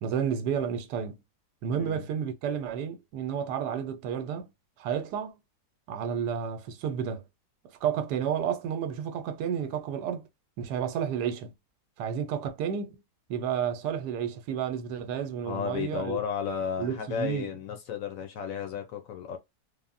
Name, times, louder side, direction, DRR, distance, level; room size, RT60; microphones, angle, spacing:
voice 1, 0.0-1.2 1.6-4.5 4.8-5.3 5.9-7.2 7.8-10.3 10.6-11.5 12.0-13.0 13.3-16.2 16.8-17.5, right 8 dB, 90° right, 1.2 m, -31 dB
voice 2, 1.7-2.1 15.4-19.4, left 7 dB, 65° left, 0.9 m, -33 dB
3.5 x 2.0 x 2.5 m
omnidirectional pair, 1.8 m